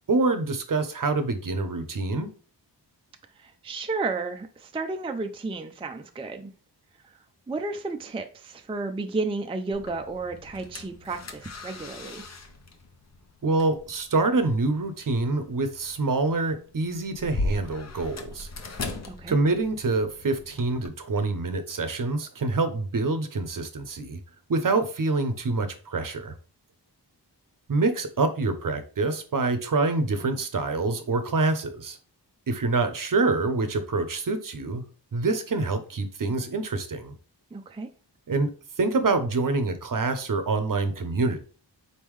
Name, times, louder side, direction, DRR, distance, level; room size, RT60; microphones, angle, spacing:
voice 1, 0.0-2.3 13.4-18.5 19.3-24.2 24.5-26.3 27.7-32.0 32.5-34.8 35.1-37.1 38.3-38.5 38.8-41.4, right 3 dB, 50° right, 0.7 m, -26 dB
voice 2, 3.4-6.5 7.0-7.1 7.5-12.2 19.1-19.4 37.5-37.9, right 3 dB, 15° right, 0.4 m, -32 dB
sound 1, 9.7-20.9, left 3 dB, 40° left, 0.7 m, -39 dB
4.2 x 3.6 x 3.1 m
wide cardioid pair, 65°, 43 cm